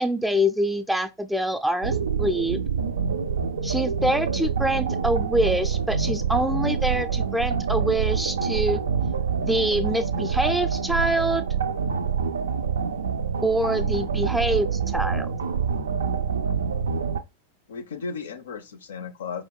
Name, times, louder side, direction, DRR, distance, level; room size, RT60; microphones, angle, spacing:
voice 1, 0.0-2.6 3.6-8.8 9.4-11.4 13.4-15.3, right 1 dB, 5° right, 0.4 m, -25 dB
sound 1, 1.8-17.2, right 6 dB, 70° right, 0.3 m, -26 dB
voice 2, 17.7-19.4, left 5 dB, 65° left, 0.5 m, -35 dB
4.7 x 2.2 x 3.6 m
figure-of-eight pair, 90°, 0 cm